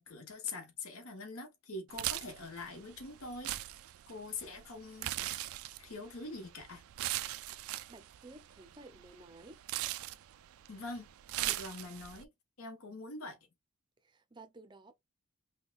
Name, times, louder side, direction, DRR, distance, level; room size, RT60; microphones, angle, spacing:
voice 1, 0.0-3.6 4.1-5.5 5.8-6.8 10.7-11.1 11.4-12.3 12.6-13.4, left 3 dB, 80° left, 1.1 m, -44 dB
sound 1, 1.9-12.2, right 15 dB, 80° right, 0.3 m, -40 dB
voice 2, 7.9-9.6 14.0-14.9, right 2 dB, 20° right, 0.5 m, -54 dB
5.5 x 2.2 x 2.4 m
head